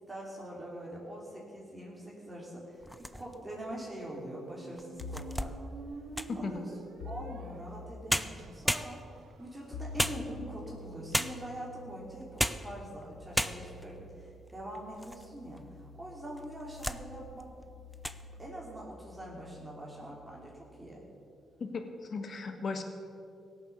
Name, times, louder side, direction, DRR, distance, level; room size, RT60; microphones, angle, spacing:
voice 1, 0.1-5.5 6.3-6.7 7.0-17.5 18.4-21.0, right 1 dB, 20° right, -4 dB, 3.2 m, -44 dB
sound 1, 2.8-3.5 4.1-4.2 4.8-6.5 7.7-7.8 8.1-9.3 10.0-10.7 11.1-11.6 12.2-12.7 13.0-13.1 13.3-13.9 14.5-15.3 15.6-15.7 16.4-17.0 17.4-17.6 17.9-18.2, equal, ahead, 0.6 m, -34 dB
Squeak, 4.1-10.0, right 4 dB, 80° right, 0.9 m, -49 dB
sound 2, 5.0-5.4 7.0-7.9 9.7-21.1, left 3 dB, 85° left, 0.9 m, -49 dB
voice 2, 6.3-6.7 21.6-22.8, left 4 dB, 55° left, 6 dB, 1.7 m, -36 dB
17.0 x 7.4 x 7.1 m, 2.5 s
cardioid pair, 75°, 0 cm